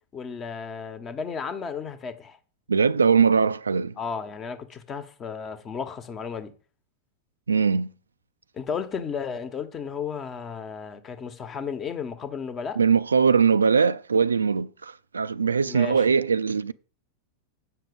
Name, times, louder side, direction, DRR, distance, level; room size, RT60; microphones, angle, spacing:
voice 1, 0.1-2.4 4.0-6.5 8.5-12.8 15.6-16.0, left 6 dB, 25° left, 1.2 m, -34 dB
voice 2, 2.7-3.9 7.5-7.9 12.8-16.7, right 6 dB, 75° right, 0.4 m, -21 dB
8.4 x 6.4 x 6.8 m
figure-of-eight pair, 90°, 0 cm